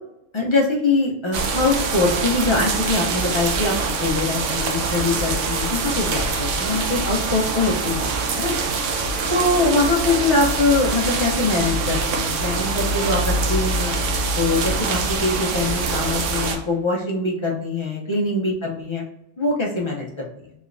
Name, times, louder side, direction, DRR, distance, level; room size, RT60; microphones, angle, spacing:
voice 1, 0.3-3.7 4.0-8.5 8.9-14.0 14.4-19.0 19.4-20.3, left 3 dB, 30° left, -1 dB, 0.6 m, -23 dB
sound 1, 1.3-16.6, right 3 dB, 90° right, 1.0 m, -24 dB
3.3 x 3.1 x 2.5 m, 0.82 s
omnidirectional pair, 1.2 m